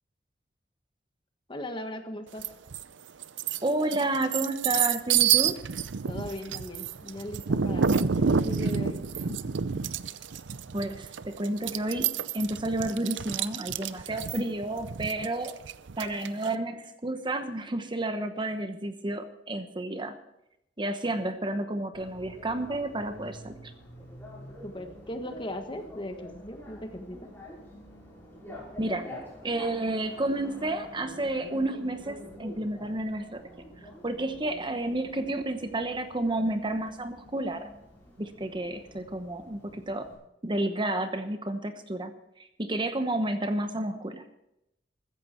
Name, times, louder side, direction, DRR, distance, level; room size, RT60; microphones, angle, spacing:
voice 1, 1.5-2.4 6.0-9.4 24.6-27.2, left 1 dB, 25° left, 6 dB, 1.5 m, -38 dB
sound 1, 2.4-2.8 3.2-16.5, right 7 dB, 85° right, 0.6 m, -28 dB
voice 2, 3.6-5.6 10.7-15.6 16.0-20.1 20.8-23.7 28.8-29.1 29.4-33.4 34.0-37.7 38.2-40.1 40.4-42.1 42.4-44.2, right 1 dB, 25° right, 8 dB, 1.0 m, -31 dB
Bicycle, 21.9-40.1, left 1 dB, 10° left, 6.2 m, -47 dB
14.5 x 14.5 x 4.5 m, 0.83 s
head